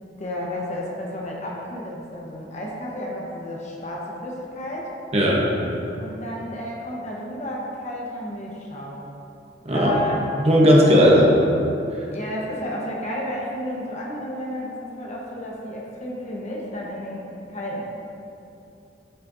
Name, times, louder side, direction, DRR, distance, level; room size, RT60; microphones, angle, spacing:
voice 1, 0.2-4.9 6.0-9.1 9.7-10.2 10.9-11.2 12.1-17.8, equal, 40° left, -3 dB, 1.2 m, -32 dB
voice 2, 5.1-5.4 9.6-10.0 10.4-11.3 11.9-12.0, equal, 35° right, -3 dB, 1.2 m, -16 dB
10.5 x 6.5 x 2.8 m, 2.8 s
head